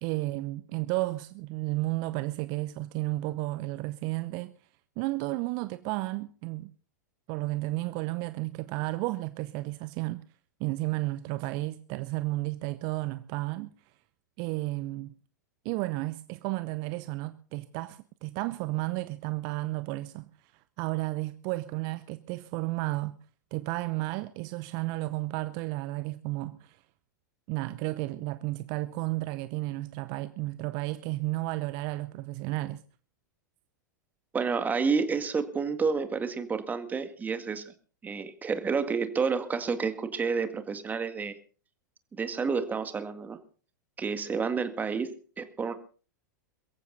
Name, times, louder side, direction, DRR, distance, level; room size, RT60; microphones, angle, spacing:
voice 1, 0.0-4.5 5.0-6.7 7.3-10.2 10.6-13.7 14.4-15.1 15.6-23.2 23.5-26.8 27.5-32.8, right 20 dB, 45° right, 0.8 m, -32 dB
voice 2, 34.3-37.7 38.0-41.3 42.1-43.4 44.0-45.7, right 5 dB, 15° right, 2.0 m, -30 dB
22.5 x 15.0 x 4.0 m
figure-of-eight pair, 95°, 10 cm